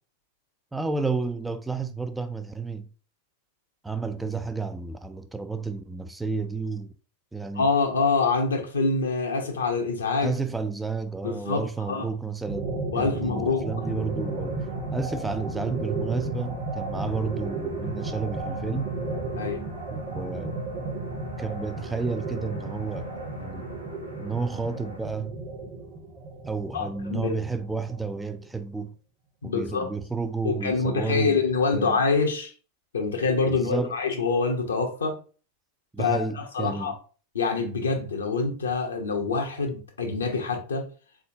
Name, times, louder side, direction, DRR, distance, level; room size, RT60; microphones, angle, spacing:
voice 1, 0.7-2.9 3.8-6.9 7.3-7.7 10.2-14.7 14.9-18.9 19.9-20.6 21.4-23.1 23.4-23.7 24.2-25.4 26.4-28.9 29.4-31.4 31.7-32.0 33.5-33.9 35.9-37.0, right 4 dB, 5° right, 0.3 m, -31 dB
voice 2, 7.5-10.3 11.2-11.6 11.9-12.1 12.9-13.7 19.4-19.6 26.7-27.3 29.4-29.9 30.4-32.5 32.9-35.2 36.0-36.9 37.3-40.8, left 4 dB, 70° left, 0.9 m, -25 dB
sound 1, 12.5-28.6, right 3 dB, 25° right, 0.7 m, -34 dB
sound 2, 13.8-25.1, right 2 dB, 90° right, 0.7 m, -43 dB
4.0 x 3.6 x 2.7 m
figure-of-eight pair, 90°, 0 cm